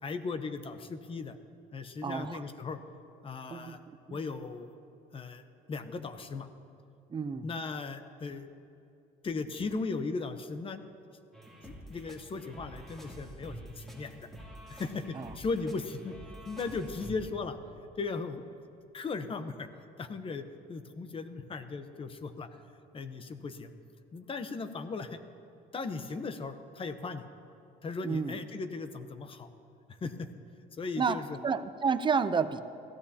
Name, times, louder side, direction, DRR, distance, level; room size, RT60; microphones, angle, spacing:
voice 1, 0.0-1.4 1.7-2.8 3.2-3.8 4.1-4.8 5.1-5.4 5.7-6.5 7.4-8.5 9.2-10.8 11.6-14.3 14.7-16.1 16.5-17.6 18.0-18.4 18.9-19.7 20.0-20.4 20.7-22.5 22.9-23.7 24.1-25.2 25.7-27.3 27.8-29.5 29.9-30.3 30.7-31.4, left 4 dB, 30° left, 9 dB, 0.9 m, -37 dB
voice 2, 2.0-2.5 3.5-4.2 7.1-7.5 15.1-15.3 28.0-28.4 31.0-32.6, right 5 dB, 30° right, 12 dB, 0.6 m, -31 dB
sound 1, 11.3-17.2, right 1 dB, ahead, 2.9 m, -47 dB
21.5 x 15.0 x 2.8 m, 2.6 s
cardioid pair, 110°, 17 cm